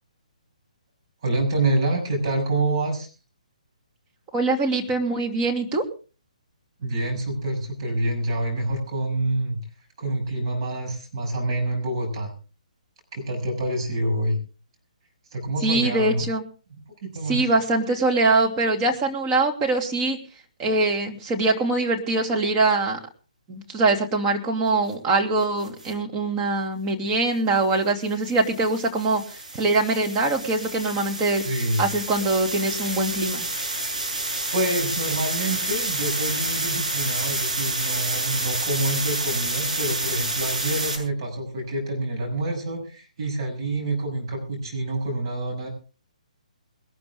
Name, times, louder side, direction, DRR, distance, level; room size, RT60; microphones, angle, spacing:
voice 1, 1.2-3.1 6.8-9.6 10.0-12.3 13.1-14.4 15.3-16.3 17.0-17.4 31.4-31.9 34.5-45.7, right 1 dB, 40° right, 1 dB, 6.5 m, -27 dB
voice 2, 4.3-5.9 15.6-16.4 17.3-20.2 20.6-23.0 23.5-29.2 29.5-31.4 31.8-33.4, right 2 dB, 20° right, 1 dB, 2.8 m, -23 dB
sound 1, 25.6-25.9 28.1-41.0, right 2 dB, 70° right, 7.6 m, -29 dB
21.5 x 13.0 x 3.7 m, 0.36 s
figure-of-eight pair, 135°, 4 cm